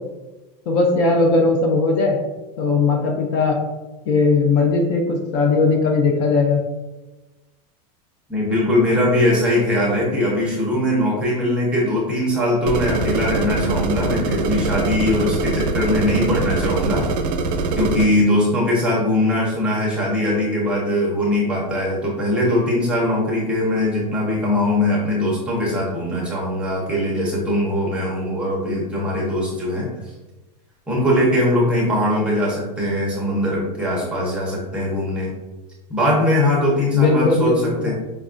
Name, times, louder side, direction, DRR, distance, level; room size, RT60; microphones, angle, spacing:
voice 1, 0.7-2.2 2.6-3.6 4.1-6.6 36.9-37.9, left 3 dB, 40° left, 2 dB, 0.4 m, -18 dB
voice 2, 8.3-17.1 17.8-29.9 30.9-35.3 35.9-37.9, left 1 dB, 5° right, -4 dB, 0.6 m, -21 dB
sound 1, 12.7-18.1, right 3 dB, 80° right, 0.6 m, -23 dB
5.0 x 2.3 x 2.4 m, 1.1 s
supercardioid pair, 175°, 20 cm